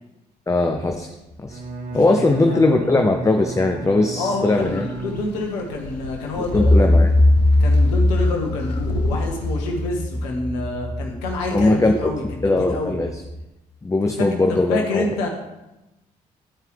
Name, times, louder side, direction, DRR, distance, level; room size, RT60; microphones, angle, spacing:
voice 1, 0.5-1.1 1.4-1.6 1.9-4.8 6.5-7.1 11.5-12.1 12.4-13.1 13.8-15.3, left 2 dB, 15° left, 4 dB, 0.6 m, -19 dB
Bowed string instrument, 1.4-5.7, right 4 dB, 40° right, 1.1 m, -34 dB
voice 2, 2.3-2.9 4.1-6.9 7.6-13.0 14.2-15.3, left 2 dB, 70° left, 1 dB, 1.0 m, -27 dB
sound 1, 4.4-9.9, left 4 dB, 85° left, 0.5 m, -36 dB
sound 2, 6.5-13.4, left 1 dB, 40° left, 1.0 m, -20 dB
11.5 x 4.5 x 3.4 m, 0.96 s
figure-of-eight pair, 40°, 20 cm